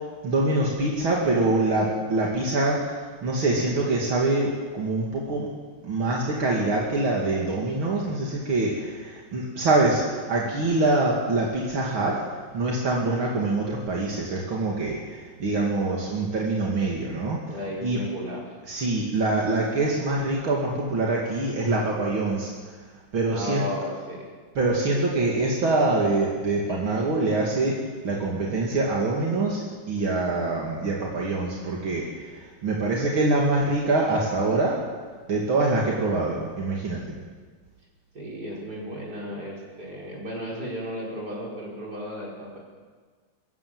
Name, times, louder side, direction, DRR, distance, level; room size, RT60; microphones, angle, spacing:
voice 1, 0.2-5.5 5.8-12.2 12.5-17.4 17.8-18.0 18.7-22.5 23.1-23.6 24.5-27.7 28.0-34.8 35.3-37.2, right 2 dB, 75° right, -3 dB, 3.4 m, -25 dB
voice 2, 17.5-18.4 23.3-24.3 38.1-42.6, equal, 50° right, -3 dB, 6.0 m, -34 dB
25.0 x 15.0 x 7.9 m, 1.5 s
omnidirectional pair, 2.2 m